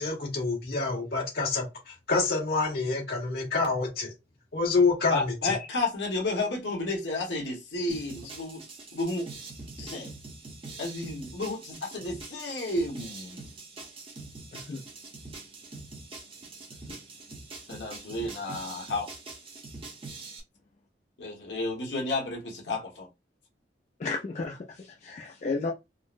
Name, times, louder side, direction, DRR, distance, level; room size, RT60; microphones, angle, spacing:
voice 1, 0.0-4.1 4.5-5.5, left 4 dB, 60° left, 1.6 m, -27 dB
voice 2, 5.1-8.6 8.9-9.3 9.8-10.1 10.8-13.4 17.7-19.1 21.2-23.1, left 2 dB, 80° left, 1.2 m, -32 dB
sound 1, 7.9-20.4, right 3 dB, 30° right, 0.8 m, -44 dB
voice 3, 24.0-25.7, left 3 dB, 40° left, 0.4 m, -33 dB
3.7 x 2.0 x 2.5 m
head